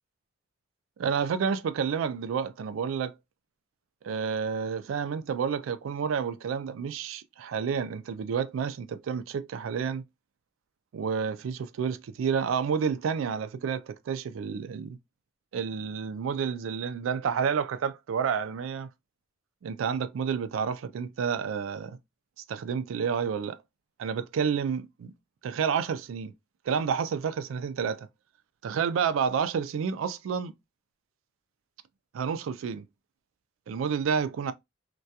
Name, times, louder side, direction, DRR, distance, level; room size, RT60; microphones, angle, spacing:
voice 1, 1.0-3.1 4.0-10.0 10.9-15.0 15.5-18.9 19.6-22.0 22.5-23.6 24.0-25.1 25.4-26.3 26.7-28.1 28.6-30.5 32.1-32.8 33.7-34.5, right 6 dB, 85° right, 0.3 m, -30 dB
2.3 x 2.2 x 2.7 m
head